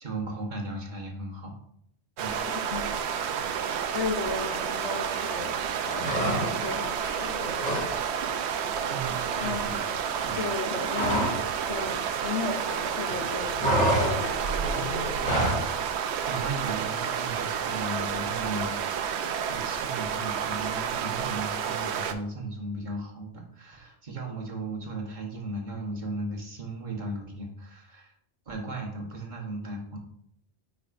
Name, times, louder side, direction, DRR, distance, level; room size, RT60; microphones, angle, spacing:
voice 1, 0.0-1.6 2.2-2.3 8.9-9.7 10.2-10.4 16.3-18.8 19.4-28.1 28.5-30.0, right 2 dB, 45° right, 0 dB, 1.2 m, -36 dB
sound 1, 2.2-22.1, right 7 dB, 75° right, 0.8 m, -30 dB
voice 2, 2.5-2.9 3.9-7.5 9.4-9.8 10.3-15.2, left 4 dB, 75° left, 5 dB, 1.1 m, -35 dB
sound 2, 6.0-6.8 7.1-7.9 8.2-8.4 8.7-11.5 11.7-12.8 13.1-15.7, right 1 dB, 5° left, 2.1 m, -28 dB
8.9 x 4.9 x 2.5 m, 0.72 s
omnidirectional pair, 1.2 m